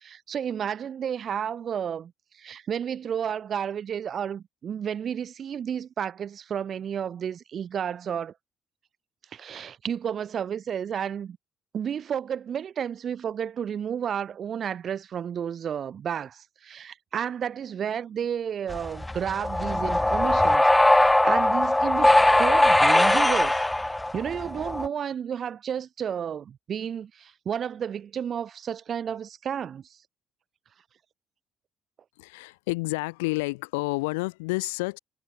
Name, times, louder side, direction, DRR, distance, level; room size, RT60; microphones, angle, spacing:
voice 1, 0.0-8.3 9.3-11.4 11.7-29.9, right 8 dB, 55° right, 2.1 m, -32 dB
sound 1, 18.7-24.9, left 1 dB, 10° left, 0.4 m, -21 dB
voice 2, 32.2-35.0, left 25 dB, 85° left, 0.6 m, -29 dB
hypercardioid pair, 55°, 0 cm